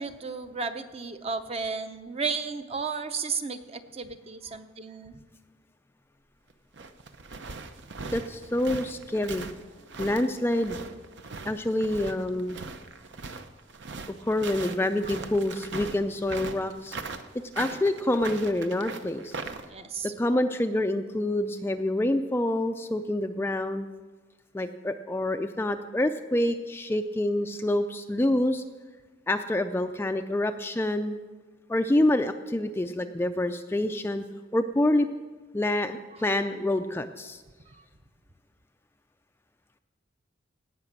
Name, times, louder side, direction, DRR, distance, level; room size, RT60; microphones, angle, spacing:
voice 1, 0.0-5.2 19.7-20.1, right 5 dB, 30° right, 9 dB, 0.7 m, -33 dB
sound 1, 6.5-19.7, right 4 dB, 70° right, 0.8 m, -39 dB
voice 2, 8.1-9.5 10.0-10.8 11.4-12.6 14.1-17.0 17.6-19.4 20.0-23.9 24.5-28.6 29.3-31.2 31.7-34.2 34.5-35.1 35.5-37.4, left 1 dB, 10° left, 7 dB, 0.4 m, -27 dB
17.5 x 5.9 x 7.3 m, 1.3 s
head